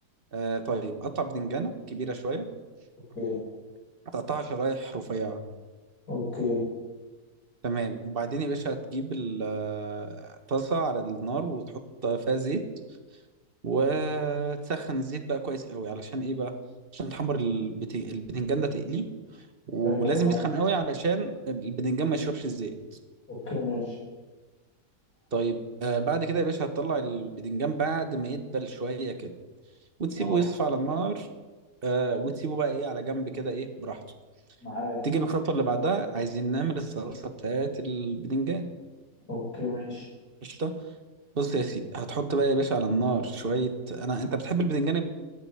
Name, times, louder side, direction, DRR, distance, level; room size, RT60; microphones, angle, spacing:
voice 1, 0.3-2.5 4.1-5.4 7.6-11.6 12.0-12.6 13.6-16.5 16.9-19.0 19.7-22.8 25.3-29.3 30.0-31.3 31.8-34.0 35.0-38.7 40.4-40.8 41.3-45.0, right 4 dB, 40° right, 8 dB, 1.4 m, -29 dB
voice 2, 6.1-6.6 19.8-20.4 23.3-24.0 30.2-30.4 34.6-35.0 39.3-40.0, left 3 dB, 80° left, -6 dB, 7.0 m, -31 dB
14.0 x 7.9 x 8.9 m, 1.3 s
omnidirectional pair, 1.7 m